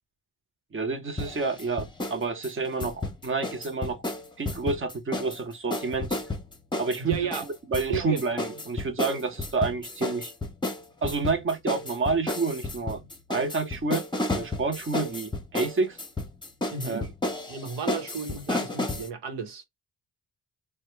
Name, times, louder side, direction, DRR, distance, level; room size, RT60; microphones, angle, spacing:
voice 1, 0.7-4.0 4.4-6.2 6.8-7.2 7.7-10.3 11.0-13.0 13.3-14.1 14.3-16.0 16.8-17.0, right 4 dB, 30° right, 0.9 m, -29 dB
sound 1, 1.2-2.2 2.4-5.4 5.7-19.1, left 2 dB, 10° left, 0.9 m, -32 dB
voice 2, 7.0-7.5 7.9-8.2 16.7-17.1 17.5-19.6, right 6 dB, 85° right, 1.1 m, -33 dB
3.0 x 2.2 x 3.1 m
cardioid pair, 65°, 40 cm